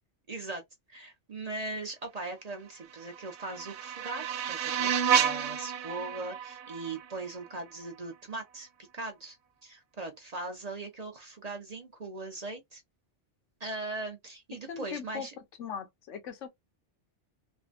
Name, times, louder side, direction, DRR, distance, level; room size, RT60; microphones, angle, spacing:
voice 1, 0.3-0.6 0.9-8.7 8.9-9.4 9.6-12.8 13.6-15.3, right 2 dB, 40° right, 0.7 m, -39 dB
sound 1, 2.8-7.9, right 8 dB, 75° right, 0.8 m, -31 dB
voice 2, 14.7-15.3 15.6-16.5, left 7 dB, 85° left, 1.2 m, -39 dB
3.3 x 2.1 x 2.4 m
omnidirectional pair, 1.2 m